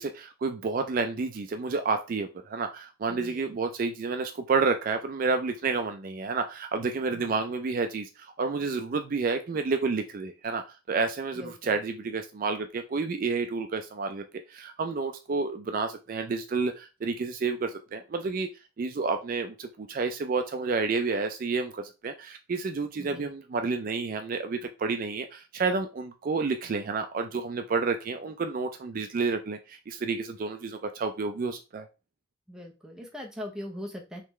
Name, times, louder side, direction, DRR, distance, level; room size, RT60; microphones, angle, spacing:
voice 1, 0.0-10.6 10.9-18.5 18.8-31.9, right 4 dB, 45° right, 6 dB, 0.4 m, -30 dB
voice 2, 3.1-3.5 7.2-7.3 11.4-11.5 23.0-23.3 32.5-34.2, left 1 dB, 5° right, -1 dB, 0.8 m, -40 dB
3.7 x 3.3 x 3.1 m, 0.29 s
head